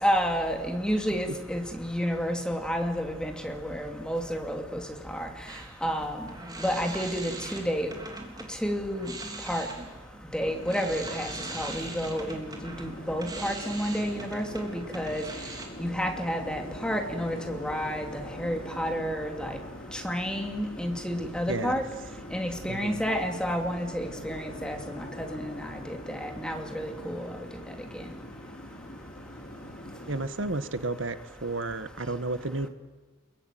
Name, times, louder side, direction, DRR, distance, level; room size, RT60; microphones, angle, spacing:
voice 1, 0.0-4.8 5.1-5.3 5.8-6.3 6.6-7.9 8.6-9.1 9.5-9.7 10.3-15.2 15.8-19.6 19.9-21.8 22.3-27.3, equal, 5° left, 3 dB, 2.8 m, -30 dB
sound 1, 5.5-8.5 8.9-15.7, right 2 dB, 20° right, 3.7 m, -41 dB
sound 2, 10.4-30.3, left 1 dB, 45° left, 3.4 m, -44 dB
voice 2, 21.5-21.8 22.7-23.0 30.1-32.7, right 2 dB, 75° right, 11 dB, 1.5 m, -32 dB
29.0 x 22.0 x 9.3 m, 1.3 s
head